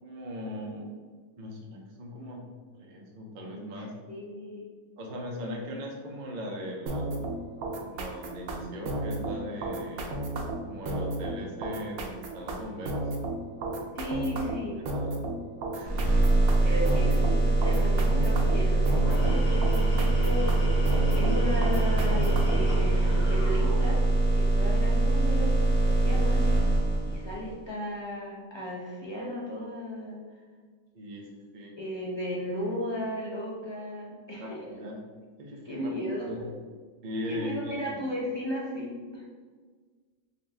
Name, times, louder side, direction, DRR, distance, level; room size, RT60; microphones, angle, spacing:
voice 1, 0.0-1.0 1.4-2.4 2.7-3.9 5.0-7.3 7.9-10.3 10.6-13.0 14.7-15.3 15.7-16.1 16.6-16.9 30.9-31.8 34.4-35.0 35.4-35.9 36.3-36.4 37.0-38.0, equal, 50° right, -1 dB, 0.6 m, -39 dB
voice 2, 3.7-4.7 13.9-14.8 16.6-20.5 21.2-24.0 24.3-26.4 27.1-30.2 31.8-34.6 35.7-36.5 37.3-39.3, equal, 30° left, -5 dB, 0.5 m, -35 dB
sound 1, 6.9-22.7, right 2 dB, 90° right, 1.1 m, -33 dB
sound 2, 15.9-27.5, right 2 dB, 25° right, 1.1 m, -24 dB
Tools, 18.9-24.3, equal, 50° left, 1.0 m, -35 dB
3.9 x 2.7 x 3.3 m, 1.5 s
omnidirectional pair, 1.5 m